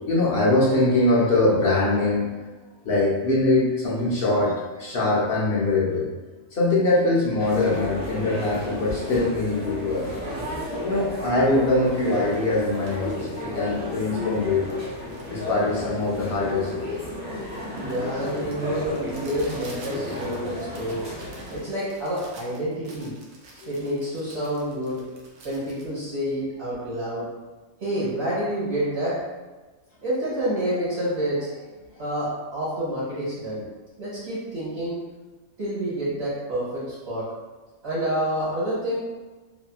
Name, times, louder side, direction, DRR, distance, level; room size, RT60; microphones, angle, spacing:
voice 1, 0.1-2.5 2.8-6.1 6.5-10.0 10.8-14.8 15.3-17.2 18.3-18.4 23.6-23.7, left 2 dB, 55° left, -5 dB, 0.7 m, -23 dB
sound 1, 7.4-21.6, left 1 dB, 10° right, 0.7 m, -33 dB
sound 2, 8.9-11.3 11.7-11.8 11.9-12.4 12.7-13.5 13.8-26.9, right 1 dB, 70° right, 0.9 m, -43 dB
voice 2, 17.7-21.0 21.5-23.1 23.6-25.0 25.4-27.3 27.8-29.2 30.0-31.5 32.0-33.6 34.0-35.0 35.6-37.3 37.8-39.0, right 1 dB, 50° right, -9 dB, 1.4 m, -28 dB
2.9 x 2.7 x 2.3 m, 1.2 s
omnidirectional pair, 1.4 m